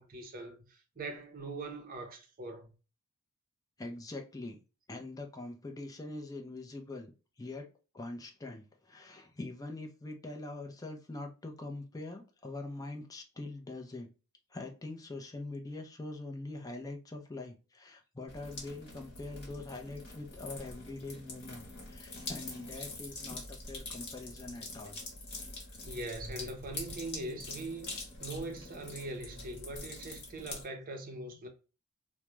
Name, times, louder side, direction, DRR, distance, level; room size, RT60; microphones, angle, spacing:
voice 1, 0.0-2.7 25.8-27.9 28.2-31.5, right 2 dB, 40° right, 0.6 m, -41 dB
voice 2, 3.8-4.6 4.9-7.1 7.4-7.7 7.9-14.1 14.5-25.0, left 2 dB, 15° left, 0.4 m, -43 dB
sound 1, 18.3-30.7, left 2 dB, 50° left, 1.0 m, -45 dB
2.3 x 2.1 x 3.0 m
head